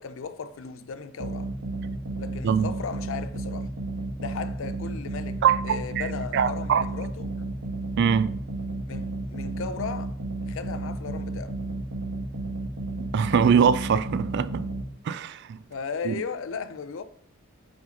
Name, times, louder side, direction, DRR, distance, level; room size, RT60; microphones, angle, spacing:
voice 1, 0.0-1.5 2.2-3.7 4.2-7.4 8.9-10.1 10.5-11.6 15.7-17.0, left 5 dB, 65° left, 0.5 m, -36 dB
sound 1, 1.2-14.8, right 2 dB, 85° right, 1.3 m, -33 dB
voice 2, 5.4-6.1 6.3-6.8 8.0-8.4 13.1-14.6 15.1-15.6 16.0-16.2, right 7 dB, 55° right, 0.3 m, -22 dB
5.8 x 5.4 x 3.7 m
head